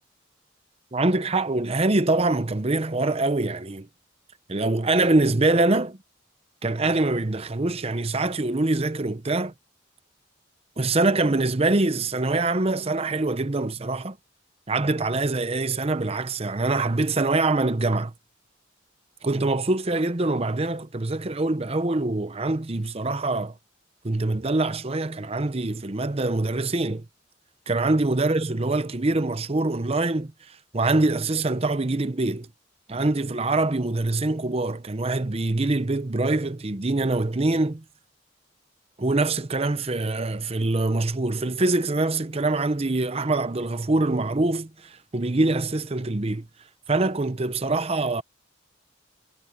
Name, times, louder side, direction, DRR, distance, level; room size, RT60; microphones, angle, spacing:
voice 1, 0.9-3.9 4.5-6.0 6.6-9.5 10.8-14.2 14.7-18.1 19.2-23.5 24.0-27.0 27.7-32.5 32.9-37.8 39.0-46.5 46.9-48.2, right 2 dB, 30° right, 0.8 m, -24 dB
head